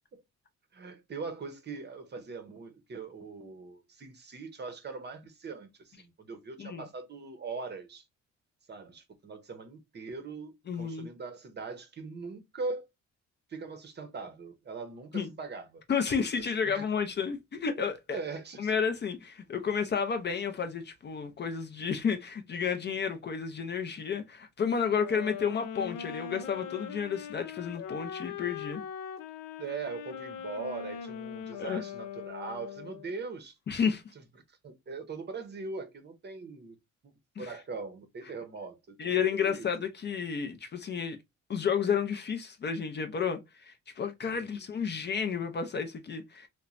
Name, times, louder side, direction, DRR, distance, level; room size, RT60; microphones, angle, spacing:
voice 1, 0.7-8.0 8.7-12.9 13.5-15.8 16.4-16.9 18.1-18.7 29.6-33.6 34.6-36.8 37.4-39.0 39.4-39.7 44.3-44.6, right 4 dB, 35° right, 0.7 m, -41 dB
voice 2, 10.7-11.1 15.1-15.3 15.9-18.2 18.6-28.8 31.6-31.8 33.7-34.0 37.4-37.5 39.0-41.2 41.5-46.5, left 6 dB, 35° left, 0.5 m, -31 dB
sound 1, 25.0-33.2, left 7 dB, 90° left, 0.5 m, -41 dB
3.0 x 2.1 x 2.4 m
cardioid pair, 90°, 30 cm